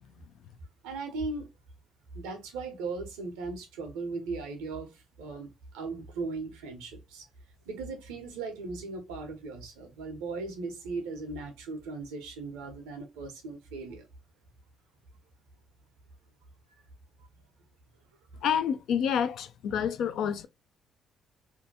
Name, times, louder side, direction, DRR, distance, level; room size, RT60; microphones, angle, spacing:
voice 1, 0.8-1.5 2.1-7.3 7.7-14.1, right 3 dB, 90° right, 0.7 m, -38 dB
voice 2, 18.4-20.5, left 8 dB, 70° left, 0.3 m, -28 dB
2.7 x 2.2 x 2.6 m
supercardioid pair, 60°, 0 cm